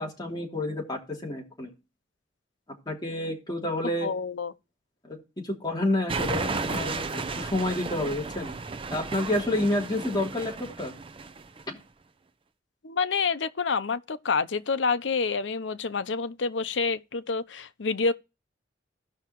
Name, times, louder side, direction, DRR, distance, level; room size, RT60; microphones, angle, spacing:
voice 1, 0.0-1.7 2.9-4.1 5.0-5.2 5.4-8.5 8.9-11.0 11.7-11.8, left 1 dB, 25° left, 3.0 m, -29 dB
voice 2, 4.0-4.5 12.8-18.1, left 4 dB, 85° left, 0.7 m, -28 dB
sound 1, 6.1-11.6, right 4 dB, 30° right, 0.6 m, -33 dB
17.0 x 5.8 x 3.0 m
head